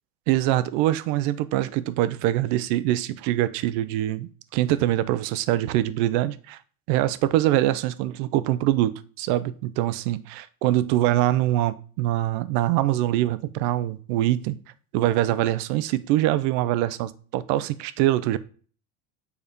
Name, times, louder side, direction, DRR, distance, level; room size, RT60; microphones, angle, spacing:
voice 1, 0.3-6.6 6.9-8.9 9.2-14.6 14.9-18.4, right 14 dB, 75° right, 0.7 m, -24 dB
7.2 x 4.2 x 5.1 m
cardioid pair, 140°, 47 cm